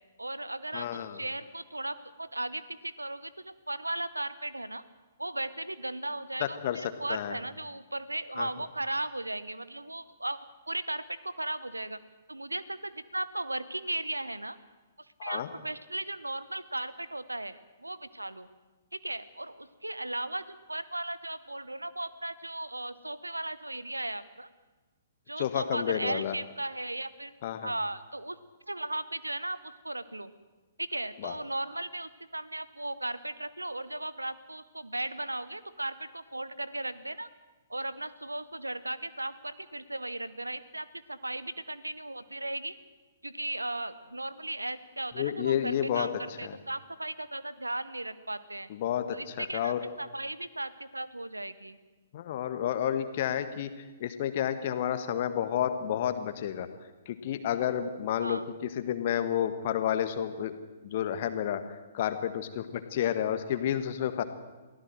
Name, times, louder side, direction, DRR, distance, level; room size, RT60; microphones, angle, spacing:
voice 1, 0.2-4.8 5.2-10.4 10.7-12.0 12.3-14.6 15.2-18.5 18.9-20.4 20.7-24.5 25.3-27.3 27.6-28.4 28.7-30.3 30.8-37.3 37.7-42.7 43.2-48.7 49.1-51.8 58.2-58.5, right 1 dB, 80° right, 15 dB, 1.1 m, -36 dB
voice 2, 0.7-1.2 6.4-6.8 7.1-7.4 8.4-8.5 15.2-15.5 25.4-26.3 27.4-27.7 31.2-31.3 45.1-46.1 46.4-46.5 48.7-49.8 52.1-53.7 54.0-56.7 57.0-60.6 60.8-61.6 61.9-64.2, left 10 dB, 40° left, 10 dB, 1.6 m, -30 dB
23.0 x 16.0 x 7.9 m, 1.2 s
figure-of-eight pair, 120°, 0 cm